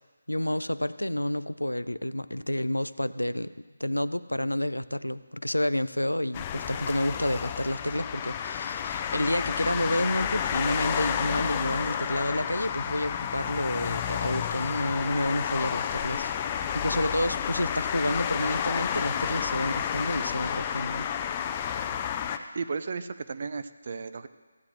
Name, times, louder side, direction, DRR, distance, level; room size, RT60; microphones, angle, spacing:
voice 1, 0.3-3.5 3.8-16.3 16.7-21.1, left 1 dB, 90° left, 15 dB, 0.4 m, -29 dB
sound 1, 6.3-22.4, left 8 dB, 20° left, 0.4 m, -31 dB
voice 2, 22.5-24.3, right 5 dB, 45° right, 11 dB, 0.5 m, -34 dB
15.5 x 9.5 x 3.1 m, 1.4 s
figure-of-eight pair, 155°, 0 cm